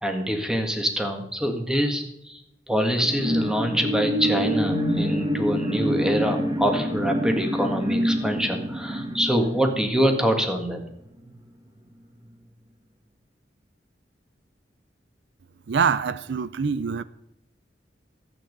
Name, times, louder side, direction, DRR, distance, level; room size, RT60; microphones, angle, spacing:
voice 1, 0.0-2.4 2.7-10.8, equal, 5° right, 1.7 m, -25 dB
sound 1, 3.0-10.8 11.2-11.3, equal, 25° right, 1.9 m, -26 dB
voice 2, 15.7-17.0, right 6 dB, 75° right, 0.5 m, -24 dB
13.0 x 8.7 x 5.3 m
head